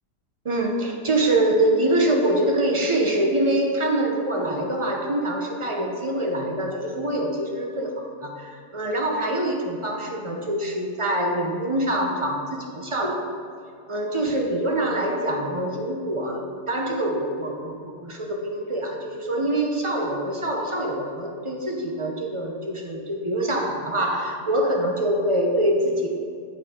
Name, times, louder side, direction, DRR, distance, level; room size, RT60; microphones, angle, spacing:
voice 1, 0.4-13.3 13.9-26.1, right 1 dB, 35° right, 1 dB, 0.5 m, -25 dB
8.6 x 8.1 x 3.7 m, 2.4 s
omnidirectional pair, 1.8 m